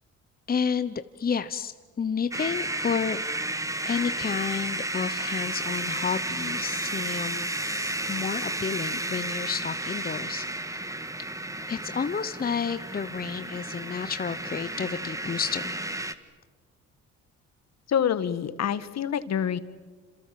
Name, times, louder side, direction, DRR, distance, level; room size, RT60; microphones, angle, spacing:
voice 1, 0.5-3.2 3.8-10.8 11.7-15.7, left 6 dB, 30° left, 11 dB, 1.0 m, -31 dB
sound 1, 2.3-16.1, right 1 dB, 10° right, 1.7 m, -32 dB
voice 2, 17.9-19.6, left 8 dB, 60° left, 13 dB, 1.7 m, -26 dB
27.5 x 27.0 x 7.7 m, 1.4 s
cardioid pair, 90°, 30 cm